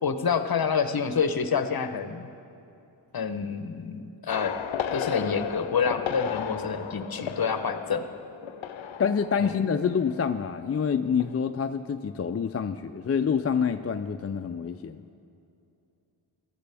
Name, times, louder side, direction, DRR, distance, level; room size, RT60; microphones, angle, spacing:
voice 1, 0.0-2.3 3.1-4.7 4.9-8.1 9.4-9.5, left 6 dB, 50° left, 9 dB, 0.9 m, -28 dB
sound 1, 4.3-10.7 11.0-11.3, left 8 dB, 80° left, 0.7 m, -35 dB
voice 2, 9.0-15.0, left 6 dB, 35° left, 8 dB, 0.4 m, -27 dB
17.0 x 12.5 x 3.4 m, 2.7 s
cardioid pair, 55°, 46 cm